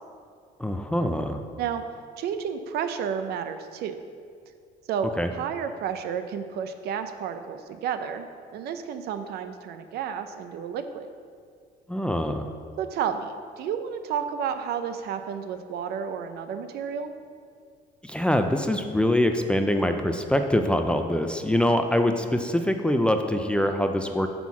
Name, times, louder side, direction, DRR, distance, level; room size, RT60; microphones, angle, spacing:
voice 1, 0.6-1.4 5.2-5.3 11.9-12.4 18.0-24.3, left 1 dB, 5° left, 6 dB, 0.3 m, -24 dB
voice 2, 2.2-4.0 4.9-11.1 12.8-17.1, right 7 dB, 70° right, 9 dB, 0.5 m, -31 dB
5.9 x 3.8 x 6.0 m, 2.2 s
cardioid pair, 110°, 17 cm